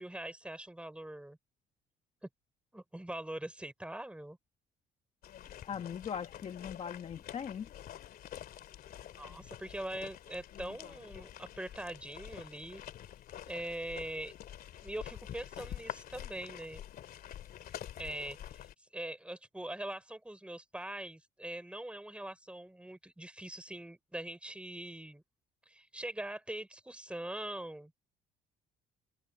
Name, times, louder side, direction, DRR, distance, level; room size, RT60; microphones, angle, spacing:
voice 1, 0.0-1.4 2.7-4.4 9.2-12.8 13.5-14.3 14.8-16.8 18.0-25.2 25.7-28.0, right 1 dB, 5° right, 4.7 m, -42 dB
sound 1, 5.2-18.7, left 11 dB, 65° left, 2.5 m, -47 dB
voice 2, 5.6-7.7, left 7 dB, 40° left, 1.3 m, -40 dB
open air
cardioid pair, 110°, 17 cm